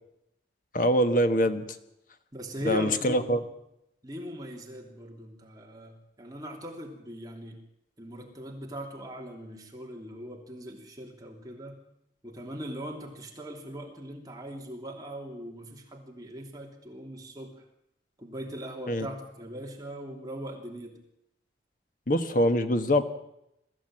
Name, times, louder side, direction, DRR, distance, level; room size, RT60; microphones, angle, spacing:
voice 1, 0.7-1.6 2.6-3.4 18.9-19.1 22.1-23.0, equal, 50° left, 9 dB, 1.4 m, -24 dB
voice 2, 2.3-3.4 4.0-7.6 8.0-11.8 12.2-17.7 18.2-21.0, equal, 20° right, 1 dB, 3.0 m, -40 dB
23.0 x 14.5 x 8.9 m, 0.81 s
head